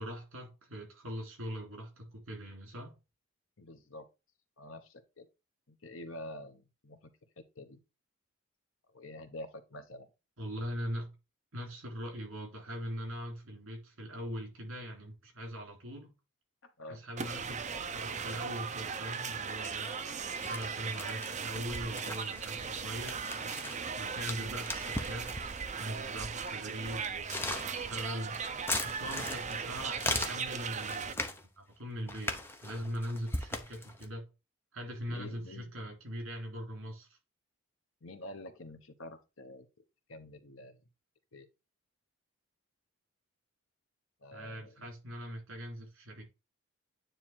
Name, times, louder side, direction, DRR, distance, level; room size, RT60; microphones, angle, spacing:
voice 1, 0.0-3.0 10.4-11.1 11.5-16.1 16.9-19.9 20.3-23.4 24.0-25.3 25.8-28.4 28.8-31.3 31.6-34.3 34.7-37.2 44.3-46.2, equal, 70° right, 3.5 m, -41 dB
voice 2, 3.6-4.1 4.6-5.3 5.7-7.0 7.4-7.8 8.9-10.1 16.8-17.0 35.1-35.7 38.0-39.7 40.1-40.8 41.3-41.5 44.2-44.9, left 1 dB, 65° left, 1.1 m, -47 dB
sound 1, 17.2-31.1, right 6 dB, 35° right, 0.6 m, -38 dB
sound 2, 18.8-19.3 19.6-25.7 26.4-26.5 27.1-31.4 32.1-34.1, left 2 dB, 10° left, 0.7 m, -39 dB
9.3 x 3.2 x 4.4 m
head